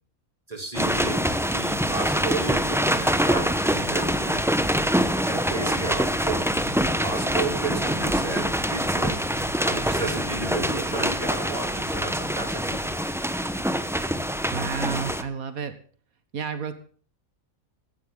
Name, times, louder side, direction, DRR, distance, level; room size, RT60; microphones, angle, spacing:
voice 1, 0.5-1.2 1.5-4.5 5.2-6.5 7.0-9.2 9.6-13.1, right 2 dB, 25° right, 4 dB, 3.1 m, -33 dB
sound 1, 0.7-15.2, equal, ahead, 0.8 m, -25 dB
sound 2, 6.5-12.9, left 1 dB, 75° left, 8.6 m, -45 dB
voice 2, 14.5-15.7 16.3-16.7, right 6 dB, 90° right, 10 dB, 1.9 m, -30 dB
16.5 x 14.5 x 3.8 m, 0.42 s
omnidirectional pair, 1.4 m